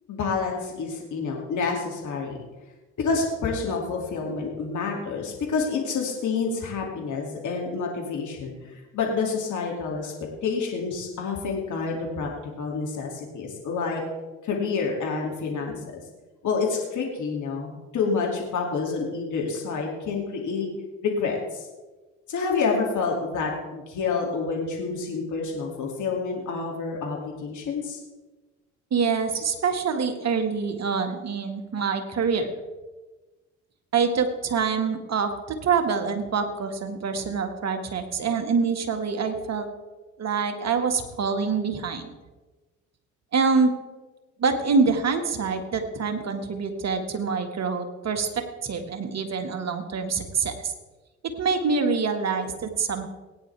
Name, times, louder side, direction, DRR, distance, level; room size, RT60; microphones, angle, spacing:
voice 1, 0.1-2.4 3.0-10.1 10.4-12.3 12.6-14.0 14.4-16.0 16.4-20.7 21.0-21.7 22.3-28.0, left 4 dB, 55° left, -1 dB, 2.5 m, -28 dB
voice 2, 28.9-32.5 33.9-39.7 40.2-42.1 43.3-43.7 44.4-50.7 51.4-53.0, right 5 dB, 45° right, 6 dB, 1.9 m, -25 dB
18.5 x 9.5 x 3.4 m, 1.2 s
hypercardioid pair, 55°, 36 cm